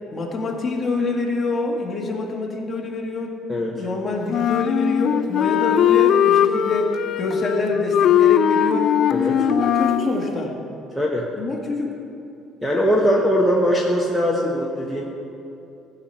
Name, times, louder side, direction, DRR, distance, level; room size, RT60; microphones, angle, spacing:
voice 1, 0.1-3.3 3.7-6.9 7.2-8.9 9.3-10.5 11.4-11.9, left 3 dB, 25° left, -1 dB, 1.9 m, -25 dB
voice 2, 3.5-3.8 9.1-9.3 10.9-11.3 12.6-15.0, equal, 5° left, -4 dB, 1.1 m, -21 dB
Wind instrument woodwind instrument, 4.3-10.1, left 10 dB, 55° left, 0.4 m, -19 dB
15.5 x 5.8 x 7.9 m, 2.7 s
cardioid pair, 140°, 0 cm